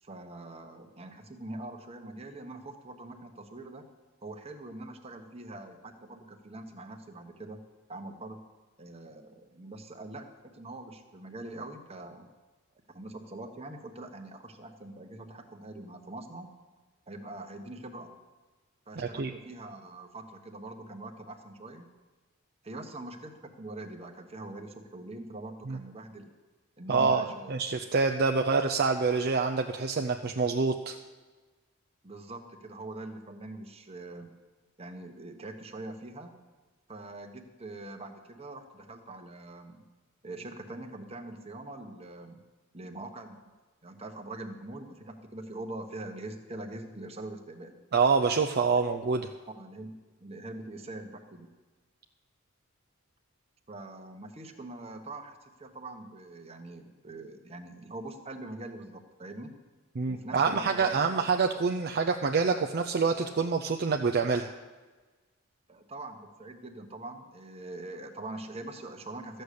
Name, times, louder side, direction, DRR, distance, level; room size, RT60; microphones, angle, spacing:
voice 1, 0.0-3.8 4.2-7.6 7.9-8.4 8.8-12.3 12.9-16.5 17.1-18.1 18.9-21.9 22.6-26.3 26.8-27.5 32.0-34.3 34.8-36.3 36.9-39.8 40.2-42.4 42.7-43.4 43.8-47.8 49.5-51.5 53.7-59.5 60.1-61.2 65.7-69.4, right 2 dB, 30° right, 4 dB, 1.2 m, -43 dB
voice 2, 19.0-19.3 25.7-25.8 26.9-31.0 47.9-49.3 60.0-64.5, right 4 dB, 50° right, 4 dB, 0.5 m, -26 dB
13.5 x 6.5 x 8.4 m, 1.3 s
head